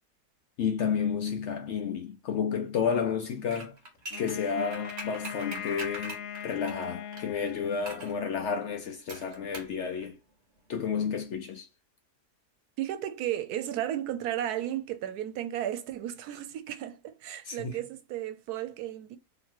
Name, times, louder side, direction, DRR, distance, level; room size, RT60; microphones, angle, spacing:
voice 1, 0.6-3.8 4.2-10.2 10.7-11.7 17.5-17.8, left 6 dB, 65° left, 0.7 m, -31 dB
sound 1, 3.5-7.3 7.9-8.2 9.1-9.8 10.0-10.1, right 2 dB, 45° right, 1.4 m, -42 dB
Wind instrument woodwind instrument, 4.1-8.3, left 9 dB, 85° left, 1.1 m, -40 dB
voice 2, 12.8-19.2, right 12 dB, 85° right, 1.1 m, -34 dB
2.9 x 2.9 x 4.4 m
omnidirectional pair, 1.6 m